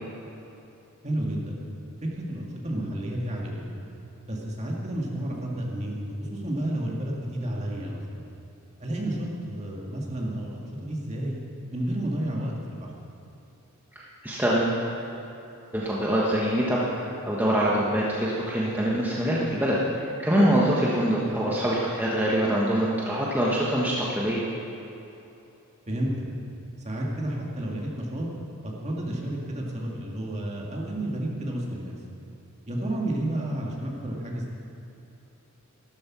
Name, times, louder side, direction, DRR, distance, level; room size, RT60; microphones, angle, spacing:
voice 1, 1.0-1.6 2.0-3.8 4.3-8.3 8.8-11.4 11.7-12.9 21.3-21.4 25.9-26.2 26.8-28.3 28.6-32.0 32.7-34.5, right 1 dB, 30° right, -2 dB, 2.1 m, -31 dB
voice 2, 14.2-14.8 15.7-19.8 20.2-24.4, right 1 dB, 10° right, -6 dB, 1.3 m, -24 dB
12.5 x 12.5 x 6.1 m, 2.9 s
head